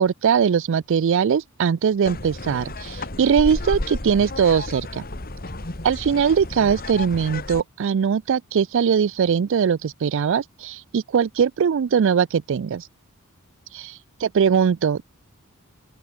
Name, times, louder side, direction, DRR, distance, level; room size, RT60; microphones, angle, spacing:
voice 1, 0.0-5.0 5.8-12.8 13.7-15.0, right 7 dB, 60° right, 0.4 m, -21 dB
sound 1, 2.0-7.6, left 2 dB, 45° left, 2.7 m, -32 dB
open air
head